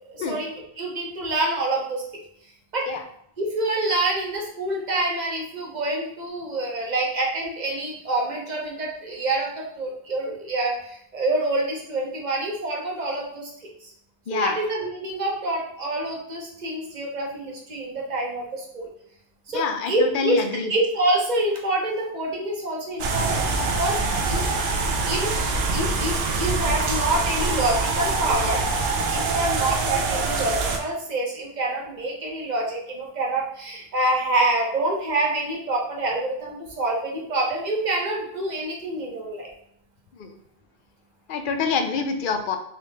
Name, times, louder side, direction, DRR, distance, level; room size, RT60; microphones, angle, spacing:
voice 1, 0.1-2.0 2.7-2.8 3.4-10.8 11.1-13.5 14.3-18.9 19.5-20.4 20.7-23.4 23.8-24.0 24.3-24.4 25.0-28.6 29.1-39.5, right 2 dB, 45° right, -1 dB, 1.0 m, -26 dB
voice 2, 14.3-14.6 19.5-20.7 40.2-40.3 41.3-42.6, left 5 dB, 60° left, 6 dB, 0.7 m, -26 dB
sound 1, 23.0-30.8, right 3 dB, 80° right, 0.8 m, -24 dB
3.8 x 3.0 x 3.3 m, 0.70 s
omnidirectional pair, 1.0 m